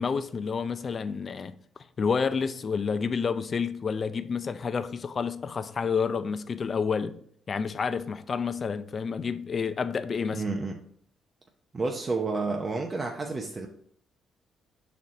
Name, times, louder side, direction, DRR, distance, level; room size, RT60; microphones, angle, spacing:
voice 1, 0.0-1.5 2.0-7.2 7.5-10.5, left 5 dB, 45° left, 0.4 m, -29 dB
voice 2, 10.3-10.8 11.7-13.7, right 3 dB, 30° right, 0.7 m, -30 dB
6.0 x 4.2 x 3.8 m
cardioid pair, 90°, 0 cm